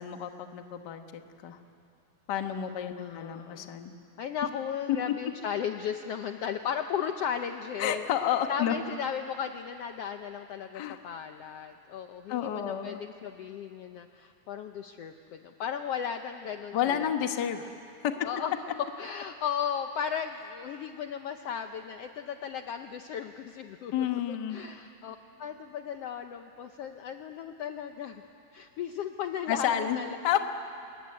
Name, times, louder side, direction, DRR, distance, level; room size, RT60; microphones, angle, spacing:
voice 1, 0.0-1.6 2.3-3.9 4.9-5.0 7.8-8.7 10.7-11.0 12.3-13.0 16.7-17.7 18.0-18.1 23.9-24.6 29.5-30.4, left 10 dB, 50° left, 6 dB, 1.3 m, -30 dB
voice 2, 3.0-3.7 4.2-8.0 8.5-17.1 17.6-17.7 18.2-18.5 19.0-23.9 24.5-28.2 28.5-30.2, left 8 dB, 70° left, 7 dB, 1.5 m, -36 dB
26.0 x 22.0 x 9.6 m, 2.6 s
omnidirectional pair, 3.4 m